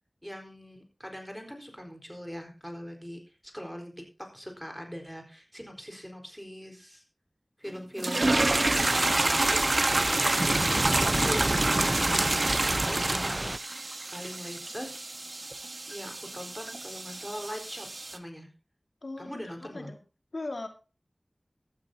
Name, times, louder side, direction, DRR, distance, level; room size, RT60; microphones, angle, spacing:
voice 1, 0.2-3.9 4.2-7.0 7.6-13.8 14.1-15.2 15.9-17.9 18.1-18.5 19.2-19.9, equal, ahead, 3 dB, 4.3 m, -41 dB
sound 1, 8.0-18.2, right 2 dB, 60° right, 1.1 m, -28 dB
Thunder / Rain, 8.2-13.6, right 1 dB, 35° right, 0.5 m, -31 dB
voice 2, 19.0-20.0 20.3-20.7, left 2 dB, 80° left, 5 dB, 2.0 m, -38 dB
16.0 x 12.5 x 2.8 m, 0.32 s
wide cardioid pair, 55°, 0 cm